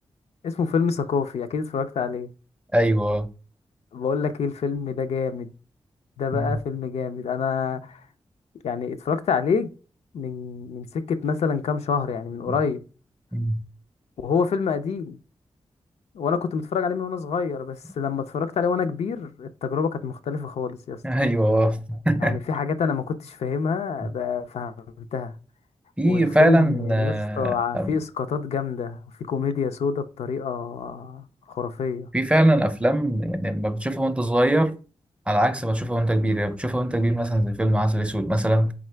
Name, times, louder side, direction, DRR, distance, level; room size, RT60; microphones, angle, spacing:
voice 1, 0.4-2.3 3.9-5.5 6.2-8.0 8.6-9.7 10.1-12.8 14.2-15.2 16.1-21.0 22.2-25.3 26.0-29.0 29.3-32.1, left 6 dB, 85° left, 0.4 m, -27 dB
voice 2, 2.7-3.3 6.3-6.6 12.5-12.6 13.3-13.6 21.0-22.4 24.0-24.1 26.0-27.9 32.1-34.8 35.3-38.7, right 1 dB, 10° right, 0.4 m, -22 dB
3.7 x 3.6 x 3.2 m
cardioid pair, 70°, 10 cm